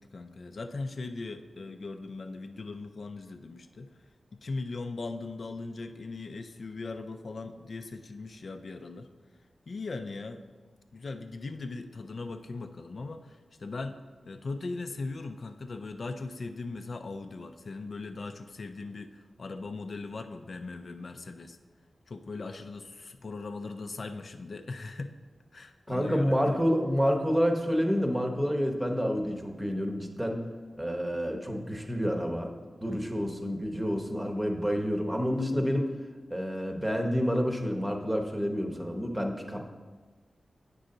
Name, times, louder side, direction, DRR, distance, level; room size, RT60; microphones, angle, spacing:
voice 1, 0.0-3.9 4.4-9.1 9.7-10.4 10.9-14.0 14.3-21.6 22.1-25.1 25.5-26.4 32.9-33.4, left 3 dB, 60° left, 7 dB, 0.4 m, -39 dB
voice 2, 25.9-30.4 30.8-32.5 32.8-35.9 36.3-39.6, equal, 10° right, 3 dB, 0.9 m, -28 dB
8.0 x 5.4 x 3.8 m, 1.4 s
wide cardioid pair, 80°, 0 cm